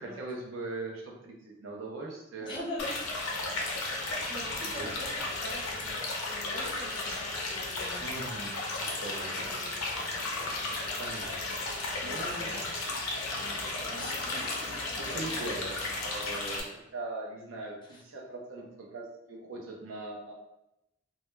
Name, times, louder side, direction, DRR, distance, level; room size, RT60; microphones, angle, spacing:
voice 1, 0.0-2.6 3.5-3.9 4.6-4.9 8.0-8.5 8.9-9.5 11.0-11.6 12.0-12.6 13.4-13.8 15.0-20.3, right 2 dB, 70° right, -2 dB, 0.6 m, -41 dB
voice 2, 2.4-3.1 3.4-3.5 3.8-8.2 9.2-10.7 12.0-12.7 13.3-14.8 15.1-15.5 17.8-18.0, left 1 dB, 25° left, -6 dB, 0.6 m, -44 dB
sound 1, 2.8-16.6, left 2 dB, 90° left, 0.6 m, -34 dB
2.2 x 2.1 x 3.0 m, 0.89 s
head